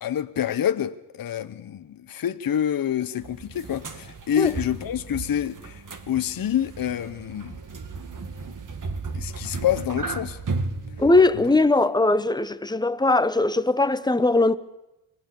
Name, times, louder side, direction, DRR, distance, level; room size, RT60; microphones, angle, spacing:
voice 1, 0.0-7.6 9.1-10.4, left 10 dB, 45° left, 1.0 m, -27 dB
sound 1, 3.2-11.7, right 3 dB, 40° right, 2.1 m, -35 dB
voice 2, 11.0-14.6, left 2 dB, 10° left, 0.9 m, -20 dB
25.5 x 18.5 x 7.1 m
cardioid pair, 85°, 48 cm